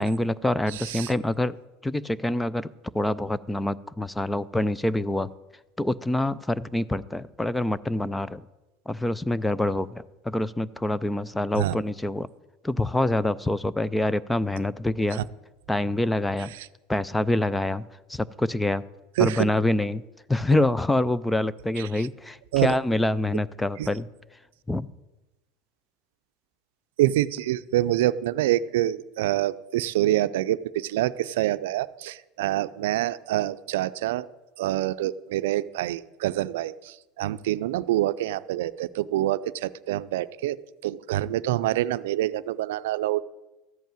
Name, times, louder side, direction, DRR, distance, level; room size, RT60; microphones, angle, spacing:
voice 1, 0.0-1.6 1.8-5.3 5.8-8.4 8.9-12.3 12.6-15.2 15.7-16.5 16.9-17.8 18.1-18.8 19.2-20.0 20.3-24.1 24.7-24.9, left 1 dB, 5° left, 19 dB, 0.4 m, -26 dB
voice 2, 0.7-1.1 11.6-11.8 15.1-15.2 16.5-16.7 19.2-19.5 21.8-22.1 22.5-22.7 23.8-23.9 27.0-34.3 34.6-40.6 40.8-43.2, right 14 dB, 85° right, 14 dB, 0.4 m, -26 dB
14.0 x 5.6 x 8.9 m, 1.0 s
supercardioid pair, 135°, 0 cm